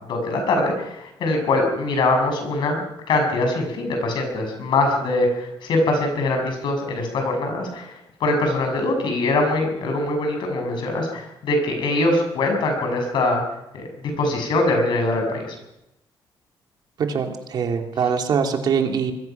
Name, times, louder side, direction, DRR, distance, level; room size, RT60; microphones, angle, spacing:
voice 1, 0.1-7.9 8.2-13.4 13.7-13.8 14.2-15.6, left 2 dB, 70° left, 4 dB, 7.1 m, -22 dB
voice 2, 17.0-19.1, right 6 dB, 55° right, 4 dB, 2.9 m, -23 dB
26.0 x 21.0 x 6.0 m, 0.86 s
wide cardioid pair, 170°, 8 cm